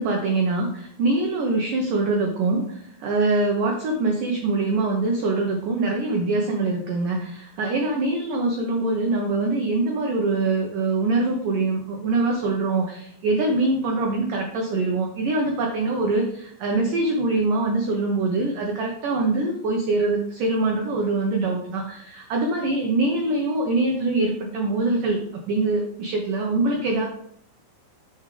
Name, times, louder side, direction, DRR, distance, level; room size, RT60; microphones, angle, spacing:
voice 1, 0.0-27.1, right 2 dB, 85° right, 1 dB, 1.9 m, -24 dB
7.4 x 7.2 x 3.3 m, 0.69 s
omnidirectional pair, 5.3 m